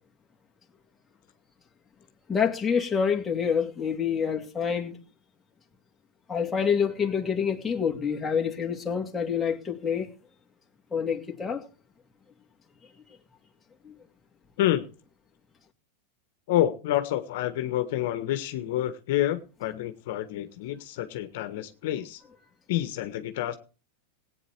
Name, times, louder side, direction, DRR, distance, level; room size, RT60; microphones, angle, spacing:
voice 1, 2.3-5.0 6.3-10.1 10.9-11.6 13.8-13.9, left 6 dB, 15° left, 2.6 m, -27 dB
voice 2, 16.5-22.2 22.7-23.6, left 13 dB, 65° left, 1.4 m, -28 dB
17.0 x 9.2 x 4.6 m
supercardioid pair, 125°, 0 cm